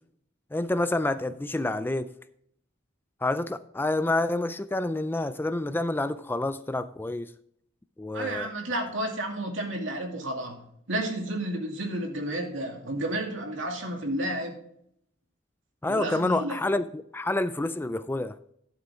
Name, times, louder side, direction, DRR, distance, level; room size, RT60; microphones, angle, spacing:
voice 1, 0.5-2.1 3.2-7.3 8.0-8.5 15.8-18.4, left 2 dB, 10° left, 0.3 m, -28 dB
voice 2, 8.1-14.6 15.9-16.6, right 1 dB, 75° right, 2.4 m, -31 dB
12.0 x 7.7 x 3.6 m
head